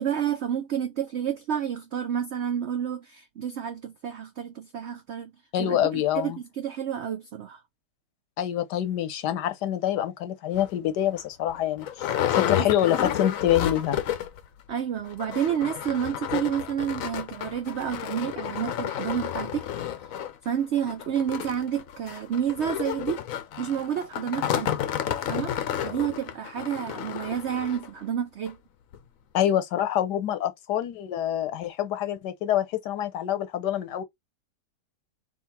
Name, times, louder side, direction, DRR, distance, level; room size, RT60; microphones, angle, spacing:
voice 1, 0.0-5.3 5.6-7.6 12.6-12.7 14.7-19.7 20.1-20.2 20.4-23.2 23.6-24.8 25.3-28.6, right 9 dB, 85° right, 0.6 m, -30 dB
voice 2, 5.5-6.4 8.4-12.1 12.3-14.0 29.3-34.0, left 11 dB, 85° left, 1.3 m, -26 dB
sound 1, 10.6-10.7 11.2-11.3 11.5-14.4 14.7-14.8 15.1-27.9 28.5-28.6 28.9-29.0, left 10 dB, 65° left, 0.9 m, -31 dB
3.8 x 2.5 x 4.1 m
omnidirectional pair, 1.8 m